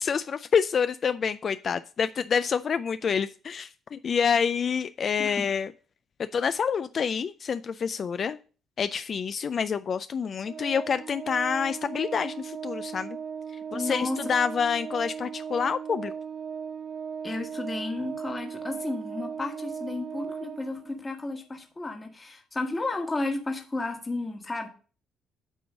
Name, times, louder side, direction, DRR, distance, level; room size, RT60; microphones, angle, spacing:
voice 1, 0.0-5.7 6.3-8.4 8.8-13.2 13.7-16.1, left 6 dB, 45° left, 0.3 m, -27 dB
Organ, 10.4-21.1, right 7 dB, 40° right, 0.3 m, -37 dB
voice 2, 13.7-14.3 17.2-24.7, left 2 dB, 20° left, 1.3 m, -33 dB
8.6 x 3.1 x 6.0 m
cardioid pair, 105°, 0 cm